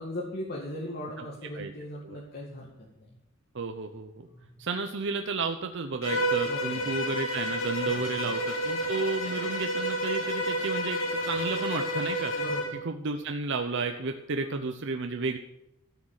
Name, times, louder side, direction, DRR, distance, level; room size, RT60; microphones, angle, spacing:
voice 1, 0.0-2.7 3.0-3.1 4.2-4.6 6.4-6.9 7.9-8.3 12.4-12.8 14.3-14.7, left 1 dB, 50° left, -4 dB, 2.2 m, -39 dB
voice 2, 3.5-4.3 4.6-12.3 12.7-15.4, right 4 dB, 60° right, 6 dB, 0.8 m, -32 dB
Bowed string instrument, 6.0-12.8, equal, 85° left, 2.6 m, -30 dB
14.0 x 6.4 x 9.0 m, 0.84 s
head